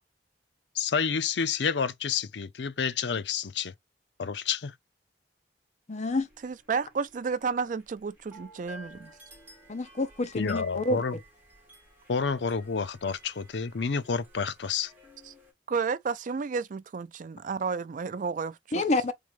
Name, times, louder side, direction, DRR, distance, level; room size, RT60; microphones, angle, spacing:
voice 1, 0.7-3.7 4.2-4.7 10.3-11.2 12.1-14.9, left 6 dB, 80° left, 0.6 m, -29 dB
voice 2, 5.9-6.3 9.7-11.0 18.7-19.1, left 2 dB, 40° left, 0.8 m, -28 dB
sound 1, 6.0-15.5, right 1 dB, 10° right, 2.3 m, -54 dB
voice 3, 6.4-9.1 15.3-15.4 15.7-18.8, right 5 dB, 50° right, 0.4 m, -32 dB
3.8 x 3.7 x 3.1 m
head